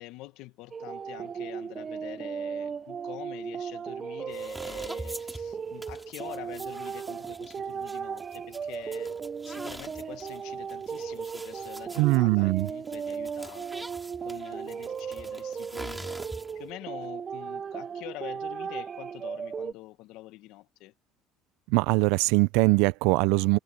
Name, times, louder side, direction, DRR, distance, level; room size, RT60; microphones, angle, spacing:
voice 1, 0.0-9.2 9.4-13.7 14.2-16.2 16.5-20.9, left 17 dB, 70° left, 1.3 m, -45 dB
sound 1, 0.7-19.7, right 6 dB, 30° right, 0.6 m, -36 dB
sound 2, 4.3-16.7, right 1 dB, 5° right, 4.1 m, -45 dB
voice 2, 12.0-12.7 21.7-23.6, right 23 dB, 80° right, 0.5 m, -22 dB
cardioid pair, 120°, 0 cm